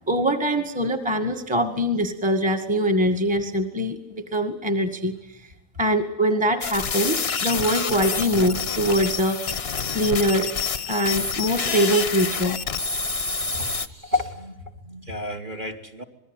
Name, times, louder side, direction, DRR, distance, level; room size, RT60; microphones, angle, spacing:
voice 1, 0.1-5.1 5.8-10.5 10.9-12.6, equal, 5° right, 5 dB, 1.7 m, -23 dB
sound 1, 6.6-13.9, left 5 dB, 40° left, 1.1 m, -27 dB
voice 2, 13.5-14.6 14.8-16.0, left 2 dB, 25° right, 7 dB, 2.2 m, -30 dB
26.5 x 21.5 x 9.1 m, 0.91 s
omnidirectional pair, 2.1 m